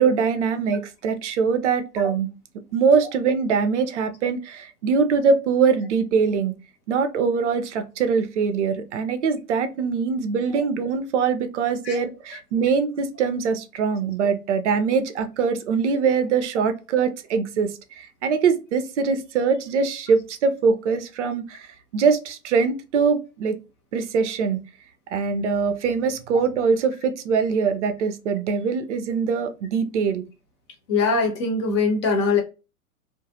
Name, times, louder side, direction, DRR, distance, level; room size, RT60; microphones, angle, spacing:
voice 1, 0.0-2.3 2.7-6.5 6.9-23.6 23.9-24.6 25.1-30.2, right 5 dB, 50° right, 0.6 m, -23 dB
voice 2, 30.9-32.4, left 4 dB, 20° left, 0.4 m, -22 dB
2.5 x 2.3 x 2.6 m
figure-of-eight pair, 105°, 45 cm